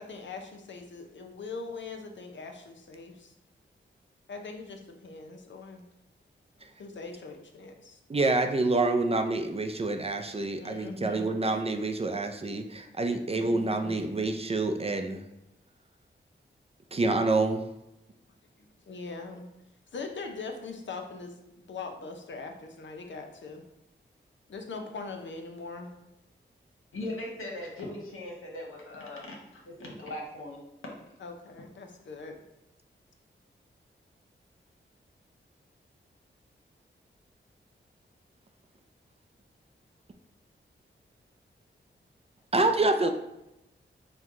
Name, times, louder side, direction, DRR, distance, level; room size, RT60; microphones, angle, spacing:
voice 1, 0.0-3.3 4.3-5.8 6.6-8.0 10.5-11.4 13.3-14.1 18.6-19.5 19.9-21.3 21.7-23.7 24.5-25.9 31.2-32.4, left 4 dB, 65° left, 4 dB, 0.7 m, -41 dB
voice 2, 8.1-15.2 16.9-17.6 42.5-43.1, right 2 dB, 30° right, 6 dB, 0.4 m, -27 dB
voice 3, 26.9-30.6, left 1 dB, 80° left, -2 dB, 1.1 m, -39 dB
4.4 x 2.2 x 3.7 m, 0.88 s
cardioid pair, 55°, 21 cm